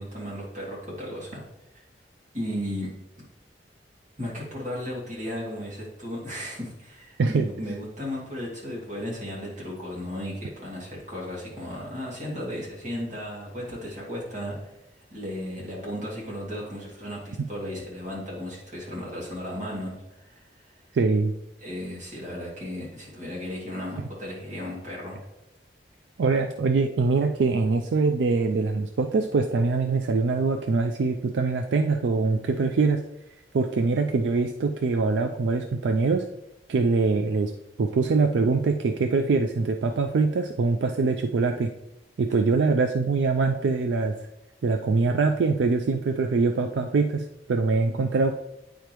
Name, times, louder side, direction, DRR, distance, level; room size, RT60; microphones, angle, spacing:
voice 1, 0.0-1.4 1.7-1.8 2.3-2.9 4.2-14.7 15.1-20.4 21.6-25.2, equal, 40° right, -5 dB, 2.5 m, -35 dB
voice 2, 20.9-21.3 24.0-24.1 26.2-33.0 33.5-36.3 36.7-37.5 37.8-41.7 42.2-44.1 44.6-48.3, right 4 dB, 80° right, 6 dB, 0.4 m, -23 dB
9.1 x 5.0 x 3.0 m, 0.89 s
head